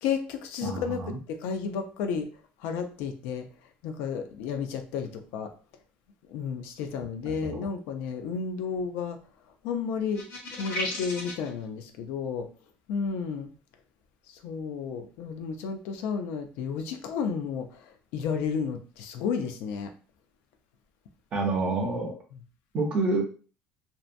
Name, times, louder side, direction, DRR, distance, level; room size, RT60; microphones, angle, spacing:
voice 1, 0.0-2.3 2.6-3.4 3.8-5.5 6.3-9.2 9.6-10.2 10.6-12.5 12.9-13.5 14.3-19.9, left 6 dB, 75° left, 7 dB, 0.4 m, -32 dB
voice 2, 0.6-1.2 7.5-7.7 21.3-22.2 22.7-23.2, right 3 dB, 30° right, 1 dB, 0.6 m, -28 dB
sound 1, 10.1-11.5, left 1 dB, 55° left, 1.0 m, -34 dB
2.7 x 2.1 x 2.5 m, 0.37 s
cardioid pair, 170°, 4 cm